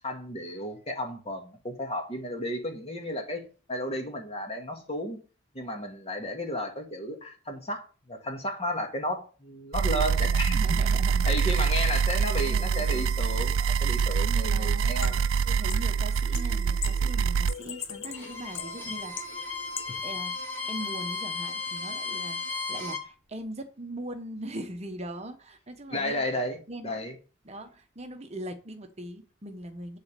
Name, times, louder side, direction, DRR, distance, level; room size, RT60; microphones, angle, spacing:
voice 1, 0.0-5.2 5.5-10.6 11.3-15.1 25.9-26.6 26.8-27.2, equal, 30° left, 1.9 m, -33 dB
sound 1, 9.7-17.5, right 6 dB, 85° right, 0.4 m, -25 dB
voice 2, 10.4-11.3 11.6-11.8 12.3-13.1 14.5-19.6 20.0-26.2 26.7-27.0 27.4-30.0, right 1 dB, 35° right, 1.0 m, -40 dB
sound 2, 15.0-20.0, left 8 dB, 70° left, 1.1 m, -41 dB
Bowed string instrument, 18.1-23.1, left 4 dB, 10° left, 2.3 m, -35 dB
10.5 x 4.1 x 6.8 m
head